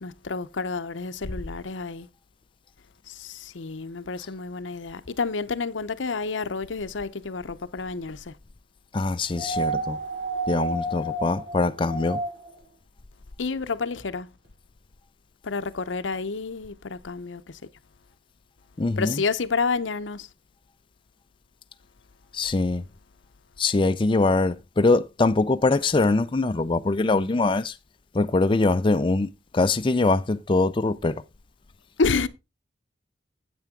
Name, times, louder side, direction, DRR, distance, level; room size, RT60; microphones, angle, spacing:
voice 1, 0.0-2.1 3.1-8.3 13.4-14.3 15.4-17.6 19.0-20.3 32.0-32.3, left 4 dB, 90° left, 0.7 m, -29 dB
voice 2, 8.9-10.0 10.5-12.2 18.8-19.2 22.3-22.8 23.6-27.8 28.1-31.2, left 3 dB, 25° left, 0.4 m, -23 dB
sound 1, 9.3-12.6 14.0-14.1, right 2 dB, 90° right, 3.9 m, -30 dB
8.9 x 8.5 x 3.7 m
head